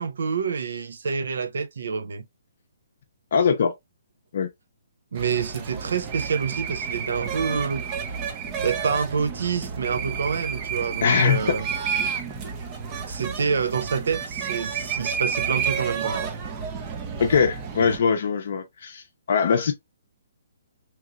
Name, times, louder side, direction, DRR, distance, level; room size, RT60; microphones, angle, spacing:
voice 1, 0.0-2.3 5.1-7.9 8.6-11.7 13.1-16.3, right 6 dB, 75° right, 0.5 m, -27 dB
voice 2, 3.3-3.7 4.3-4.5 11.0-11.6 17.2-19.0 19.3-19.7, left 6 dB, 55° left, 0.6 m, -21 dB
sound 1, 5.1-18.0, right 6 dB, 20° right, 0.5 m, -30 dB
2.9 x 2.9 x 2.4 m
hypercardioid pair, 160°, 0 cm